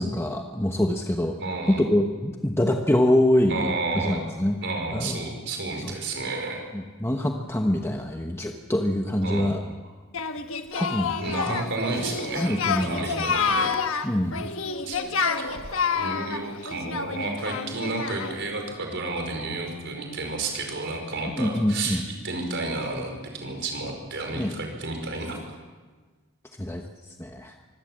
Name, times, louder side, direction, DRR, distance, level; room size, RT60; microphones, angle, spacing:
voice 1, 0.0-1.4 1.7-4.6 4.9-5.2 5.9-6.0 7.0-9.6 10.7-11.6 12.3-13.4 14.0-14.4 21.4-22.0 24.3-24.5 26.6-26.8 27.2-27.5, left 1 dB, 10° left, 3 dB, 1.1 m, -25 dB
voice 2, 1.4-1.8 3.5-4.2 4.6-6.6 9.2-9.7 11.2-13.8 14.9-22.0 22.2-25.5, right 3 dB, 55° right, 3 dB, 5.2 m, -31 dB
Singing, 10.1-18.5, left 5 dB, 65° left, 1.3 m, -28 dB
24.5 x 16.5 x 7.6 m, 1.4 s
head